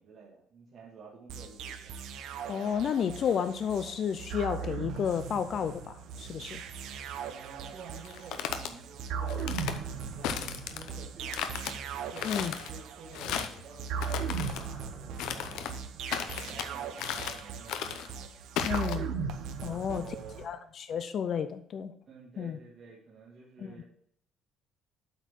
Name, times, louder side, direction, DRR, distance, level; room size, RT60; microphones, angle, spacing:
voice 1, 0.0-1.9 7.3-11.4 12.1-15.7 16.1-18.0 19.6-20.4 22.1-23.8, right 4 dB, 40° right, -5 dB, 1.8 m, -50 dB
sound 1, 1.3-20.5, right 6 dB, 65° right, 0.9 m, -39 dB
voice 2, 2.5-6.6 12.2-12.5 18.7-19.1 19.6-20.0 20.4-21.9 22.4-22.6 23.6-23.7, left 7 dB, 40° left, 11 dB, 0.4 m, -31 dB
steps on a wood branch - actions, 8.0-8.7 9.3-9.8 10.2-10.9 11.3-11.7 12.2-12.7 13.1-13.6 14.0-14.6 15.2-15.8 16.1-16.7 17.0-17.4 17.7-18.1 18.6-18.9, left 9 dB, 90° left, 0.8 m, -35 dB
8.0 x 4.5 x 6.1 m, 0.66 s
cardioid pair, 175°, 0 cm